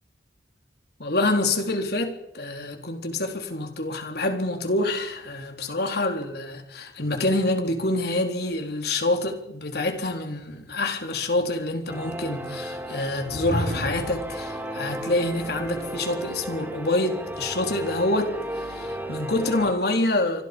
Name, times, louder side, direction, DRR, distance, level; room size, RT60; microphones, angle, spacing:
voice 1, 1.0-20.4, left 2 dB, 60° left, 4.1 m, -26 dB
sound 1, 11.9-19.7, right 1 dB, 10° right, 3.7 m, -34 dB
sound 2, 13.1-14.3, equal, 90° right, 7.1 m, -31 dB
28.5 x 25.5 x 5.4 m
head